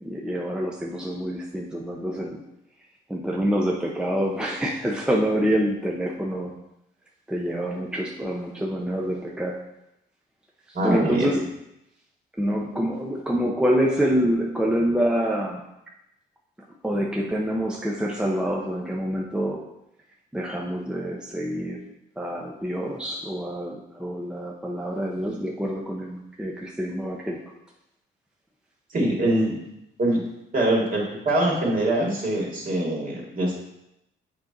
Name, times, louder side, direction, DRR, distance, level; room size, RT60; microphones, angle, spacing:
voice 1, 0.0-2.4 3.1-6.5 7.3-9.6 10.7-11.4 12.4-15.6 16.8-19.7 20.3-21.8 22.2-27.4, equal, 5° right, -1 dB, 0.7 m, -26 dB
voice 2, 10.7-11.3 28.9-29.5 30.0-30.2 30.5-33.6, right 1 dB, 45° right, -3 dB, 2.3 m, -23 dB
7.4 x 4.5 x 3.9 m, 0.86 s
cardioid pair, 90°, 20 cm